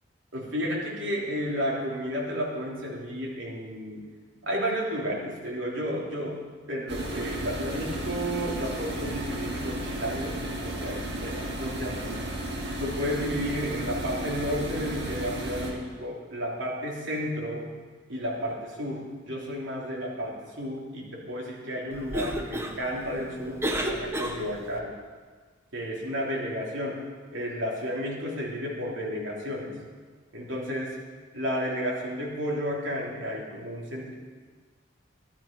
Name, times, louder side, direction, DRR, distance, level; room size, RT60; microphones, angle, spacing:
voice 1, 0.3-4.0 4.4-6.4 6.7-12.2 12.8-17.7 18.1-25.0 25.7-27.0 27.3-29.8 30.3-31.0 31.3-34.1, equal, 80° right, -3 dB, 3.3 m, -32 dB
sound 1, 6.9-15.7, right 1 dB, 60° right, 2.1 m, -33 dB
Cough, 21.9-24.8, equal, 15° right, 1.0 m, -32 dB
13.0 x 12.5 x 5.3 m, 1.5 s
head